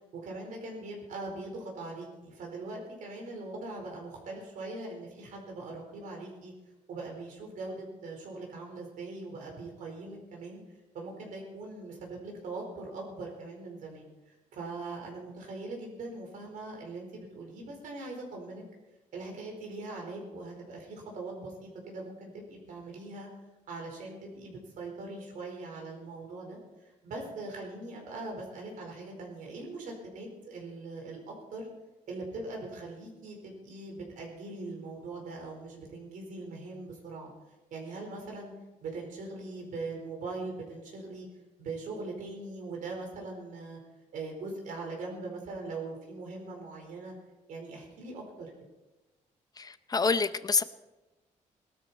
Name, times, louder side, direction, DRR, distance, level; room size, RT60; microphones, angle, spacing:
voice 1, 0.1-6.5 6.9-10.6 10.9-14.1 14.5-18.6 19.1-23.3 23.7-26.6 27.0-31.7 32.1-37.3 37.7-38.5 38.8-41.3 41.6-43.8 44.1-47.1 47.5-48.5, right 3 dB, 85° right, 0 dB, 4.5 m, -41 dB
voice 2, 49.9-50.6, left 4 dB, 30° left, 13 dB, 0.7 m, -25 dB
18.5 x 13.0 x 4.3 m, 1.1 s
cardioid pair, 115°, 13 cm